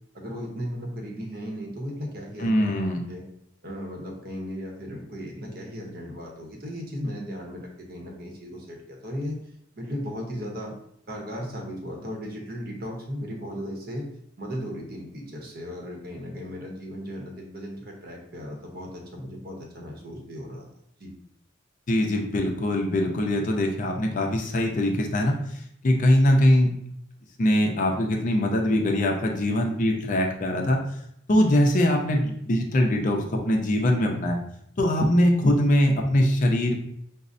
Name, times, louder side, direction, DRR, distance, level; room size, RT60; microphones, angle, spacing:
voice 1, 0.1-3.2 3.6-9.4 9.8-10.7 11.1-14.0 14.4-20.7 21.0-21.1, equal, 50° right, 0 dB, 0.8 m, -36 dB
voice 2, 2.4-3.0 21.9-25.3 25.8-26.7 27.4-30.8 31.3-34.4 34.8-36.7, left 1 dB, 45° left, 2 dB, 0.5 m, -22 dB
5.2 x 2.0 x 2.5 m, 0.73 s
head